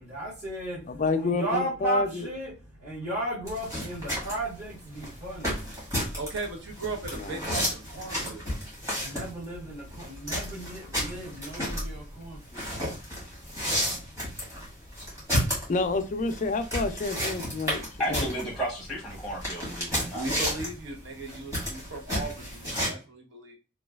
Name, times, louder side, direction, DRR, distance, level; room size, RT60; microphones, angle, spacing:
voice 1, 0.0-0.8 1.2-2.5 2.8-5.6 9.0-12.7, right 1 dB, 35° right, 1.2 m, -35 dB
voice 2, 0.9-2.3 7.2-7.4 15.7-17.8 18.1-18.3, left 3 dB, 35° left, 0.3 m, -28 dB
sound 1, 3.5-22.9, equal, 15° right, 1.2 m, -32 dB
voice 3, 6.2-8.4 20.1-23.6, right 3 dB, 65° right, 0.7 m, -37 dB
voice 4, 18.0-20.3, equal, ahead, 0.8 m, -33 dB
3.1 x 2.2 x 2.2 m
head